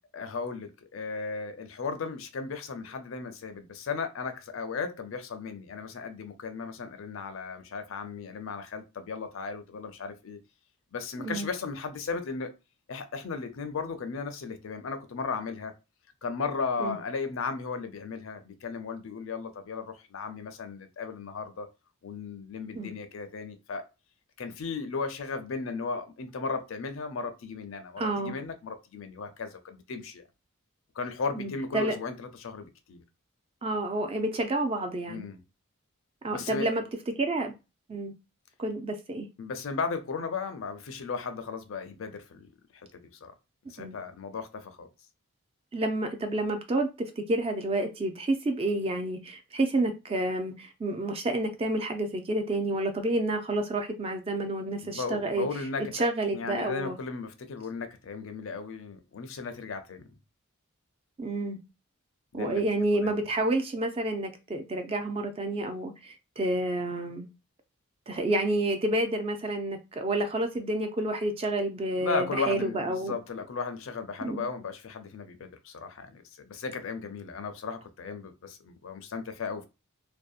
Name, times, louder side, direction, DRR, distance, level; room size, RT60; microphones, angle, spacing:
voice 1, 0.1-10.4 10.9-12.5 12.9-15.7 16.2-21.7 22.0-23.8 24.4-30.2 31.0-33.0 35.1-35.4 36.3-36.7 39.4-42.5 42.9-43.3 43.7-44.9 54.8-56.1 56.3-60.1 62.3-62.6 62.9-63.2 72.0-79.6, left 4 dB, 65° left, 0.4 m, -36 dB
voice 2, 28.0-28.4 31.4-32.0 33.6-35.3 36.2-36.8 37.2-37.5 37.9-38.1 38.6-39.3 43.8-44.0 45.7-55.5 55.9-57.0 61.2-61.6 62.3-67.3 68.1-73.2 74.2-74.5, right 2 dB, 25° right, 0.3 m, -29 dB
2.6 x 2.1 x 2.3 m
head